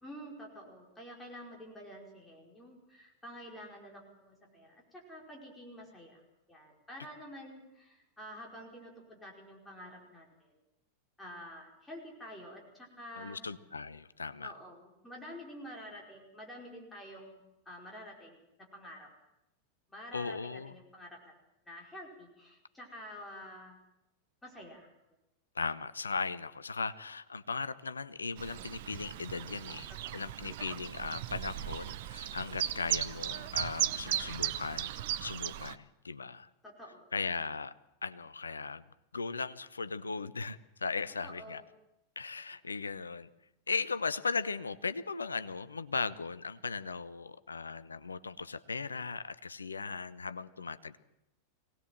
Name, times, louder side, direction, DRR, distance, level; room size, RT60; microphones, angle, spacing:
voice 1, 0.0-6.2 6.5-10.6 11.2-13.4 14.4-18.4 18.7-19.1 19.9-21.3 21.6-23.8 24.4-24.9 30.0-30.2 36.6-37.0 41.2-41.6, equal, 10° left, -1 dB, 5.0 m, -49 dB
voice 2, 13.2-14.5 20.1-20.8 25.5-34.9 35.2-36.5 37.1-37.7 38.0-38.8 39.1-41.6 42.2-43.3 43.7-51.0, left 4 dB, 75° left, 15 dB, 0.8 m, -37 dB
Chirp tweet, 28.4-35.8, right 12 dB, 50° right, 0.8 m, -37 dB
23.5 x 18.5 x 7.6 m, 0.88 s
figure-of-eight pair, 90°, 0 cm